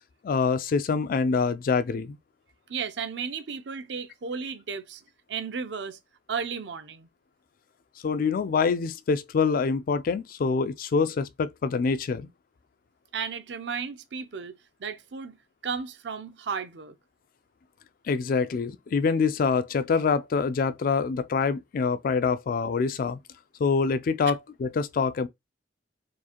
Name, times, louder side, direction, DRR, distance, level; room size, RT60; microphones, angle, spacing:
voice 1, 0.2-2.2 8.0-12.3 18.1-23.2 23.6-25.3, left 5 dB, 45° left, 0.3 m, -25 dB
voice 2, 2.7-5.0 5.3-6.0 6.3-7.1 13.1-15.4 15.6-17.0 24.3-24.4, right 6 dB, 65° right, 0.5 m, -34 dB
4.6 x 2.4 x 2.9 m
head